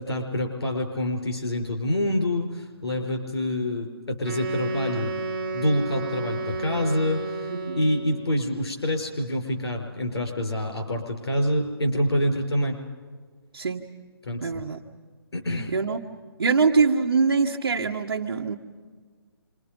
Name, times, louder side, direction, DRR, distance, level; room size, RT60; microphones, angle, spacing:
voice 1, 0.0-5.1 5.5-12.8 14.2-14.5 15.3-15.7, left 1 dB, 75° left, 2 dB, 5.3 m, -26 dB
Wind instrument woodwind instrument, 4.2-8.3, right 3 dB, 30° right, 3.5 m, -31 dB
voice 2, 7.5-7.8 13.5-13.8 14.4-14.8 15.7-16.0 16.4-18.6, right 5 dB, 60° right, 2 dB, 1.4 m, -23 dB
30.0 x 26.5 x 5.3 m, 1.5 s
hypercardioid pair, 170°, 13 cm